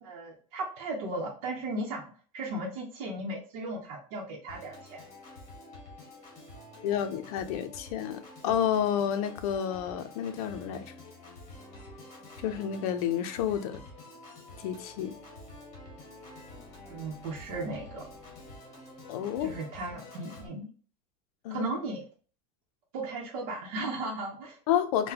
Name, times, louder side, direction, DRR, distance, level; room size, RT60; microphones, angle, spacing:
voice 1, 0.0-5.0 16.8-18.0 19.4-20.7 21.5-22.0 22.9-24.6, right 2 dB, 55° right, 0.8 m, -36 dB
Organ, 4.5-20.5, left 2 dB, 35° left, 1.4 m, -48 dB
voice 2, 6.8-10.9 12.4-13.8 14.6-15.1 19.1-19.5 21.4-21.8 24.7-25.1, left 9 dB, 70° left, 0.6 m, -30 dB
3.8 x 2.2 x 2.8 m
supercardioid pair, 175°, 20 cm